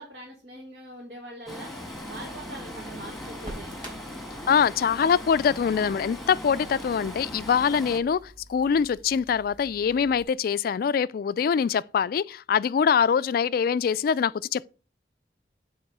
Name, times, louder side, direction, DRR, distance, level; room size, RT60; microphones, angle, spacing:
voice 1, 0.0-1.7 2.1-3.8, right 1 dB, 70° right, 1.9 m, -42 dB
Stream, 1.5-8.0, left 1 dB, ahead, 1.5 m, -39 dB
Crackle, 2.0-10.2, equal, 25° right, 4.6 m, -48 dB
voice 2, 4.5-14.7, left 7 dB, 55° left, 0.3 m, -24 dB
8.5 x 3.6 x 6.0 m
head